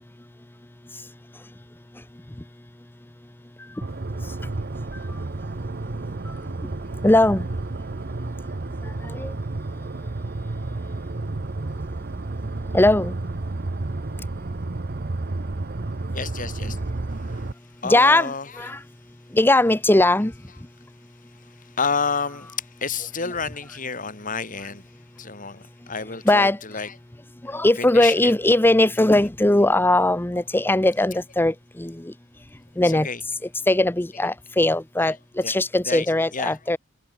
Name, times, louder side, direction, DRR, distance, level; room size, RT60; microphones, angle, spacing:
sound 1, 3.8-17.5, right 2 dB, 45° right, 0.8 m, -31 dB
voice 1, 7.0-7.5 9.0-9.3 12.7-13.1 17.8-18.8 19.3-20.3 26.2-26.6 27.4-32.1 32.8-33.1 33.7-36.8, left 1 dB, 10° left, 0.7 m, -19 dB
voice 2, 16.1-16.8 17.3-17.4 17.8-18.7 21.8-22.5 22.8-24.9 25.2-26.9 27.8-28.3 32.8-33.2 35.4-35.6 35.8-36.1 36.3-36.6, left 5 dB, 40° left, 4.5 m, -29 dB
head